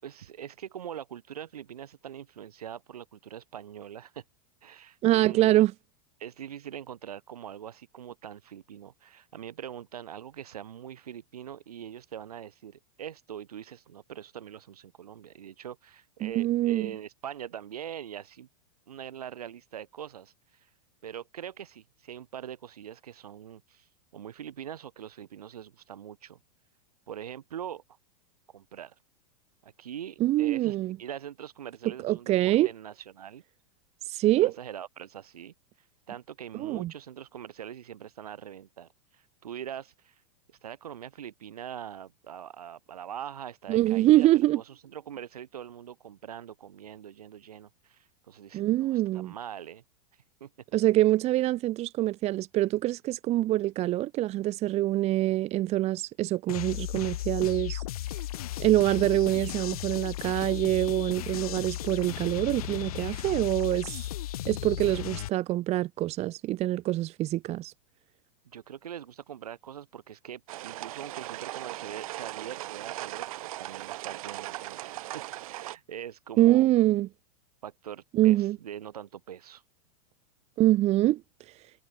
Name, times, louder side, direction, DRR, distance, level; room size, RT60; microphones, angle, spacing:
voice 1, 0.0-4.2 4.6-5.6 6.2-18.5 18.9-20.7 21.0-23.9 24.1-26.4 27.1-27.8 28.5-28.9 29.6-33.4 34.4-35.5 36.1-40.1 40.5-49.8 50.4-50.5 68.4-76.7 77.6-79.6, right 9 dB, 90° right, 2.7 m, -42 dB
voice 2, 5.0-5.7 16.2-16.9 30.2-31.0 32.0-32.7 34.1-34.5 36.6-36.9 43.7-44.6 48.5-49.3 50.7-57.8 58.6-64.1 64.5-67.7 76.4-77.1 78.1-78.6 80.6-81.2, right 15 dB, 35° right, 1.5 m, -25 dB
sound 1, 56.5-65.3, left 14 dB, 75° left, 1.1 m, -35 dB
sound 2, 70.5-75.8, right 16 dB, 65° right, 1.6 m, -38 dB
hypercardioid pair, 125°, 19 cm